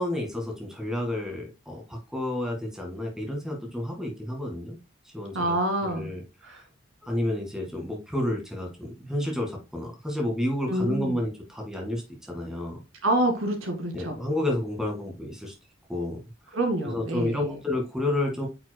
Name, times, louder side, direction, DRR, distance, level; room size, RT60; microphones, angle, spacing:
voice 1, 0.0-4.8 5.1-5.6 5.8-6.6 7.0-12.8 13.9-15.5 15.9-16.6 16.8-18.5, left 1 dB, 5° right, 1 dB, 1.9 m, -30 dB
voice 2, 5.3-6.1 6.4-6.6 10.7-11.1 13.0-14.2 16.5-17.6, right 1 dB, 80° right, 4 dB, 2.2 m, -27 dB
8.5 x 6.0 x 2.2 m, 0.28 s
head